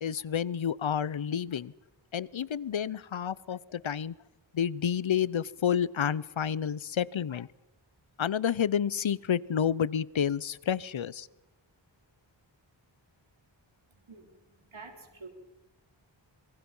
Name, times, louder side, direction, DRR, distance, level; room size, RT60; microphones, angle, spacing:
voice 1, 0.0-1.7 2.1-4.1 4.5-7.5 8.2-11.3, left 8 dB, 80° left, 21 dB, 0.8 m, -30 dB
voice 2, 13.9-15.3, right 4 dB, 85° right, 4 dB, 4.5 m, -49 dB
26.5 x 23.5 x 5.5 m, 0.95 s
wide cardioid pair, 55°, 47 cm